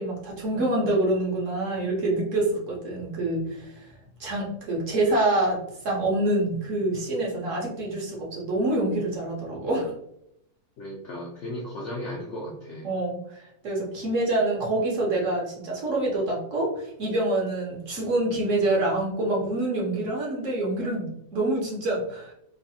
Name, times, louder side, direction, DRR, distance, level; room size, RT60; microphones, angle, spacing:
voice 1, 0.0-3.9 4.2-5.6 5.8-9.9 12.8-13.2 13.6-22.3, right 2 dB, 60° right, -3 dB, 1.0 m, -26 dB
voice 2, 10.8-12.9, left 1 dB, 70° left, -2 dB, 0.7 m, -35 dB
3.1 x 2.1 x 2.6 m, 0.75 s
omnidirectional pair, 1.7 m